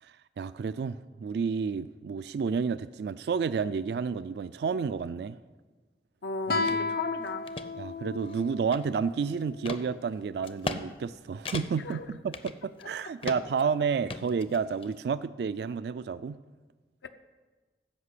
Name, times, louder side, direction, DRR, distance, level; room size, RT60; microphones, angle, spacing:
voice 1, 0.0-5.4 7.8-16.4, right 5 dB, 70° right, 15 dB, 0.3 m, -31 dB
voice 2, 6.2-7.4 11.8-12.1 12.8-12.9 17.0-17.1, left 4 dB, 80° left, 8 dB, 0.6 m, -35 dB
Guitar, 6.5-9.7, left 3 dB, 55° left, 0.9 m, -34 dB
sound 1, 6.7-6.8 7.3-7.7 8.2-9.1 9.7-9.8 10.4-10.8 11.1-11.2 11.5-11.9 12.3-12.9 13.2-13.6 14.1-14.9, left 3 dB, 30° left, 0.5 m, -37 dB
14.5 x 5.7 x 8.3 m, 1.3 s
head